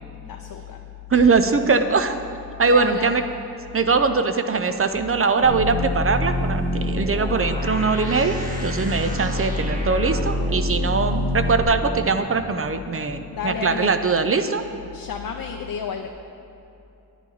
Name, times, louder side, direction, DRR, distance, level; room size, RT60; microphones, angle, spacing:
voice 1, 0.3-0.8 1.1-1.3 2.7-3.1 13.3-14.0 14.9-16.1, left 6 dB, 65° left, 3 dB, 0.6 m, -31 dB
voice 2, 1.1-2.2 2.6-3.2 3.7-14.6, right 4 dB, 35° right, 8 dB, 0.5 m, -21 dB
sound 1, 5.4-11.6, left 1 dB, 20° right, 1.5 m, -26 dB
10.0 x 9.9 x 4.0 m, 2.8 s
wide cardioid pair, 115°, 38 cm